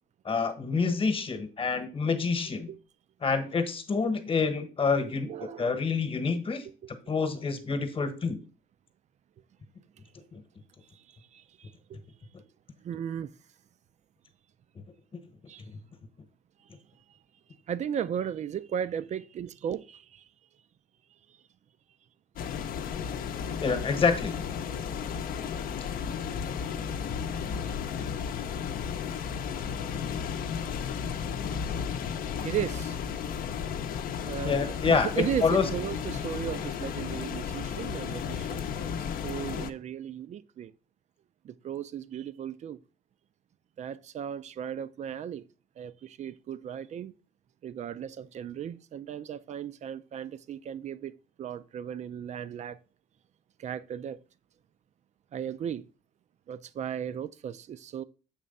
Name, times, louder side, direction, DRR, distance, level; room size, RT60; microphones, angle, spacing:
voice 1, 0.2-2.7 3.2-6.7 7.1-8.4 10.3-10.4 15.1-15.2 23.6-24.3 34.4-35.7, left 5 dB, 35° left, 1.2 m, -27 dB
voice 2, 5.3-5.9 11.3-12.0 12.8-13.3 15.5-15.6 17.7-20.2 31.7-31.8 32.4-33.0 34.3-34.6 34.9-38.9 39.2-40.7 41.4-42.8 43.8-45.4 45.8-47.1 47.6-51.1 51.4-52.8 53.6-54.2 55.3-55.8 56.5-58.0, right 9 dB, 45° right, 0.5 m, -36 dB
sound 1, 22.4-39.7, left 7 dB, 55° left, 0.7 m, -34 dB
7.3 x 3.3 x 5.3 m
cardioid pair, 110°, 17 cm